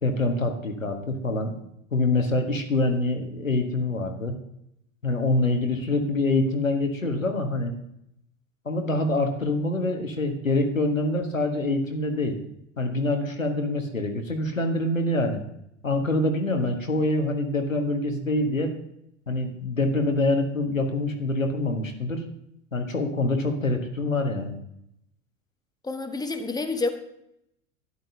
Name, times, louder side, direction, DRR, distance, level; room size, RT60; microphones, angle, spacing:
voice 1, 0.0-1.5 1.9-4.4 5.0-7.7 8.6-12.4 12.8-15.4 15.8-18.7 19.3-22.2 22.7-24.6, left 2 dB, 90° left, 5 dB, 1.4 m, -25 dB
voice 2, 25.8-26.9, left 3 dB, 10° left, 6 dB, 1.3 m, -28 dB
12.5 x 10.5 x 2.8 m, 0.76 s
figure-of-eight pair, 80°, 39 cm